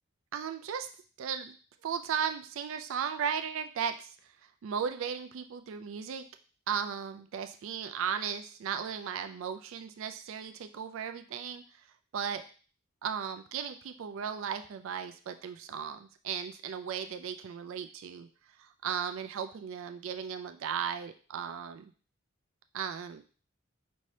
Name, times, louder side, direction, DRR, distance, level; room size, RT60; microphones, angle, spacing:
voice 1, 0.3-0.9 1.2-1.5 1.8-4.1 4.6-6.3 6.7-11.9 12.1-12.4 13.0-18.3 18.6-21.9 22.7-23.2, right 7 dB, 70° right, 8 dB, 0.4 m, -36 dB
5.3 x 2.7 x 3.2 m, 0.39 s
head